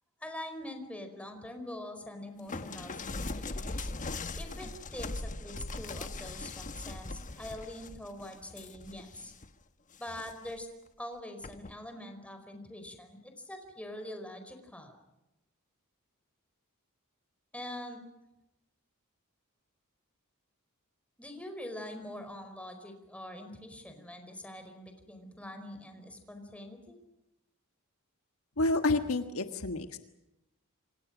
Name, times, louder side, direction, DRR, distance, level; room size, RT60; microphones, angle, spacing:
voice 1, 0.2-3.9 4.3-9.3 10.0-10.7 11.0-15.0 17.5-18.0 21.2-27.0, left 1 dB, 5° left, 5 dB, 4.8 m, -44 dB
sound 1, 2.5-9.5 9.9-10.6 11.4-11.7, left 2 dB, 35° left, 1.2 m, -40 dB
voice 2, 28.6-30.0, left 2 dB, 70° left, 7 dB, 1.6 m, -29 dB
28.5 x 25.5 x 6.3 m, 0.92 s
head